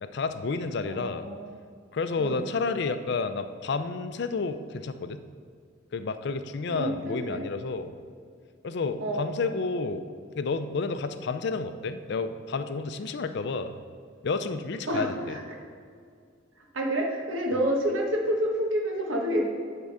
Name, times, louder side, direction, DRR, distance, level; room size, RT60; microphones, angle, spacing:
voice 1, 0.0-1.3 1.9-5.2 5.9-7.9 8.6-10.1 10.4-13.8 14.2-15.3, left 4 dB, 60° left, 10 dB, 0.4 m, -30 dB
voice 2, 0.8-1.6 2.2-2.4 6.7-7.4 9.0-9.3 14.9-15.4 16.7-19.4, equal, 85° right, 0 dB, 1.3 m, -28 dB
10.5 x 3.8 x 5.6 m, 2.2 s
head